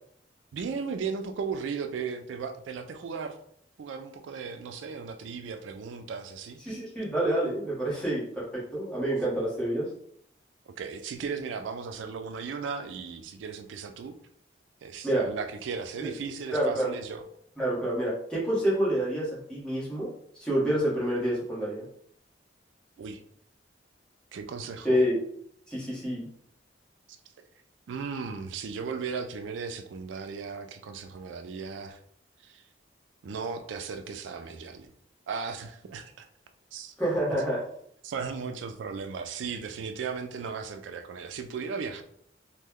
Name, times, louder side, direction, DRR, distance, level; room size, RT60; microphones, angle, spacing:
voice 1, 0.5-3.4 3.8-6.6 10.7-14.1 14.8-17.2 23.0-23.2 24.3-25.0 27.9-32.0 32.4-32.6 33.2-34.9 35.3-36.3 36.7-36.9 37.3-37.4 38.0-42.0, right 5 dB, 85° right, 8 dB, 0.3 m, -36 dB
voice 2, 6.6-9.9 15.0-15.3 16.0-16.1 16.5-16.9 17.6-20.1 20.3-21.8 24.8-25.2 25.7-26.3 37.0-37.6, right 1 dB, 5° left, -7 dB, 1.1 m, -28 dB
3.0 x 2.1 x 3.6 m, 0.66 s
head